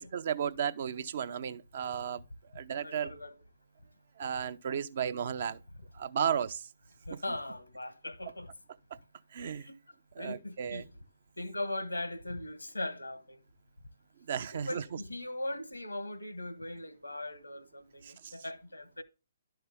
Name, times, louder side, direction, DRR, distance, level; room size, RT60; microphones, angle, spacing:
voice 1, 0.0-2.2 2.5-3.1 4.2-5.6 5.9-6.7 9.3-9.7 10.2-10.9 14.3-14.8 18.0-18.3, right 8 dB, 50° right, 0.6 m, -34 dB
voice 2, 2.8-3.3 7.1-8.5 9.6-9.8 10.2-10.9 11.4-13.4 14.5-19.0, left 1 dB, 85° left, 1.1 m, -39 dB
11.5 x 5.6 x 3.5 m
figure-of-eight pair, 130°, 0 cm